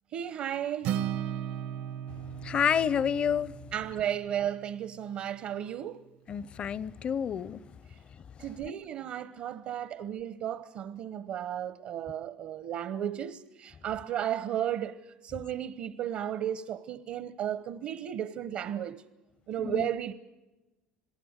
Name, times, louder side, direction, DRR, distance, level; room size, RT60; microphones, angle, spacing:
voice 1, 0.1-0.9 3.7-6.0 8.4-19.0 19.5-20.1, right 10 dB, 65° right, 1.0 m, -34 dB
Acoustic guitar, 0.8-5.1, right 10 dB, 80° right, 1.3 m, -36 dB
voice 2, 2.1-3.6 6.3-7.6 8.4-8.7 19.6-19.9, left 8 dB, 40° left, 0.7 m, -30 dB
27.5 x 18.5 x 8.1 m
supercardioid pair, 105°, 3 cm